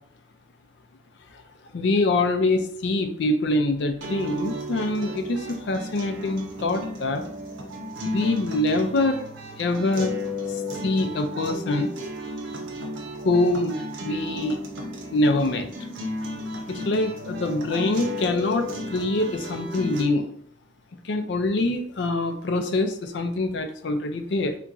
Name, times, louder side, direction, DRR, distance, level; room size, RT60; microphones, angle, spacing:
voice 1, 1.7-7.2 8.0-9.2 9.6-10.2 10.5-11.9 13.1-14.6 15.1-15.7 16.7-20.3 21.0-24.6, left 2 dB, 60° left, 6 dB, 0.4 m, -24 dB
sound 1, 4.0-20.0, left 1 dB, 80° right, 0.7 m, -34 dB
2.9 x 2.6 x 3.5 m, 0.65 s
head